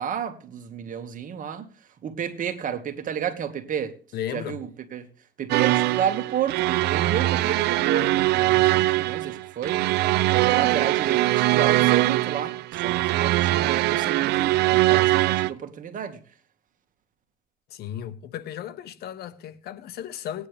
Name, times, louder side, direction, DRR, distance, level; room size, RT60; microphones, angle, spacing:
voice 1, 0.0-1.7 2.0-4.0 4.3-5.1 5.4-9.8 10.3-16.2, right 8 dB, 50° right, 1.9 m, -31 dB
voice 2, 4.1-4.6 17.7-20.5, left 10 dB, 70° left, 1.1 m, -35 dB
Decadent Intro, 5.5-15.5, right 17 dB, 80° right, 0.6 m, -22 dB
19.0 x 9.8 x 3.4 m
cardioid pair, 110°, 17 cm